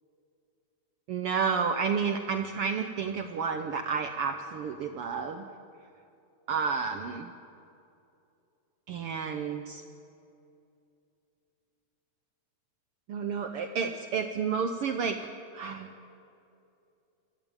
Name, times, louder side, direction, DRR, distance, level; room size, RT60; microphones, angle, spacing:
voice 1, 1.1-5.4 6.5-7.3 8.9-9.8 13.1-15.2 15.5-15.9, right 6 dB, 70° right, 7 dB, 1.4 m, -31 dB
25.0 x 15.0 x 8.9 m, 2.6 s
omnidirectional pair, 3.5 m